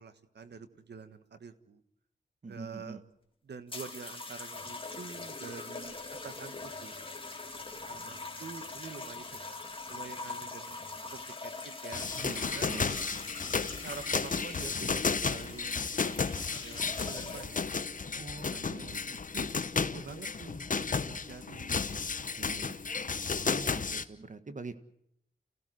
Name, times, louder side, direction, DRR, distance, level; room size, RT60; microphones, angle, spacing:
voice 1, 0.0-1.8 2.5-3.0 3.4-6.0 6.2-7.0 7.5-9.4 9.9-10.8 11.1-12.1 12.4-12.7 13.8-17.6 18.2-19.5 19.9-22.3, right 5 dB, 80° right, 10 dB, 1.5 m, -47 dB
voice 2, 2.4-3.0 12.1-13.1 18.1-19.2 22.4-22.8 23.4-24.8, right 3 dB, 45° right, 10 dB, 1.7 m, -45 dB
sound 1, 3.7-17.7 18.6-18.9, left 3 dB, 30° left, 2.4 m, -43 dB
sound 2, 11.9-24.0, left 5 dB, 50° left, 1.0 m, -33 dB
29.0 x 16.0 x 7.9 m, 0.78 s
wide cardioid pair, 70°, 17 cm